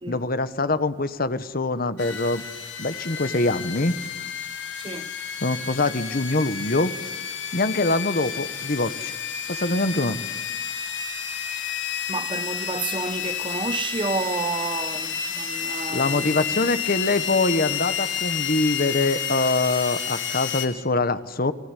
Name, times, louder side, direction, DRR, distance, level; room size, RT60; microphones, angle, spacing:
voice 1, 0.1-2.4 2.8-3.9 5.4-6.9 7.5-9.1 9.5-10.2 15.9-21.5, left 2 dB, 50° left, 1.2 m, -24 dB
sound 1, 2.0-20.7, left 8 dB, 70° left, 3.1 m, -31 dB
voice 2, 4.8-5.1 12.1-16.7, right 3 dB, 25° right, 0.9 m, -30 dB
29.0 x 20.0 x 10.0 m
head